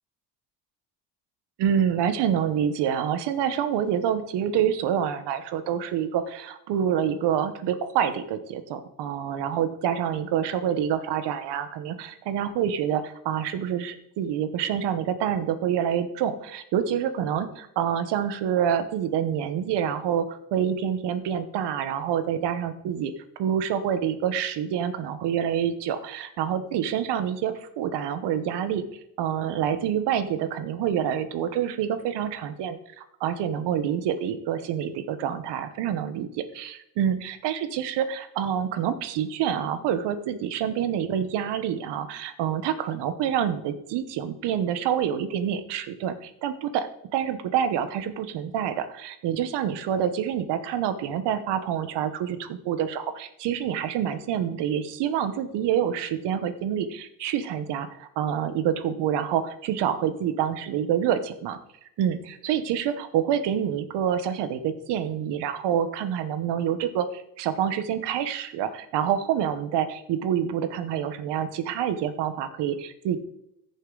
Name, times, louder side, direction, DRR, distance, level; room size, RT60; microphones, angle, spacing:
voice 1, 1.6-28.8 29.2-61.6 62.0-73.2, right 9 dB, 75° right, 11 dB, 1.1 m, -27 dB
14.5 x 6.8 x 3.9 m, 0.79 s
cardioid pair, 125°, 41 cm